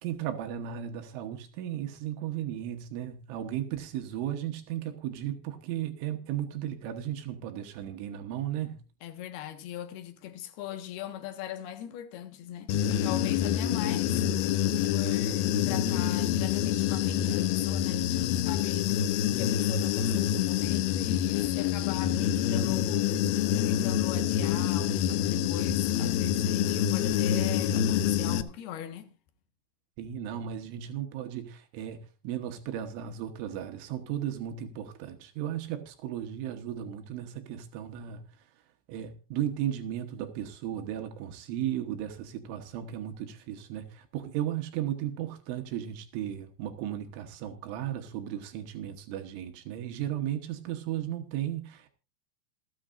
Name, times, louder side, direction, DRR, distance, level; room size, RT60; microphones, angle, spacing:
voice 1, 0.0-8.8 30.0-38.3 38.9-51.9, right 11 dB, 80° right, 3.7 m, -35 dB
voice 2, 9.0-12.7 13.0-14.2 14.9-23.1 23.6-29.1, left 11 dB, 65° left, 3.2 m, -40 dB
Human voice / Buzz, 12.7-28.4, left 10 dB, 85° left, 2.2 m, -27 dB
28.0 x 9.5 x 2.6 m
omnidirectional pair, 5.5 m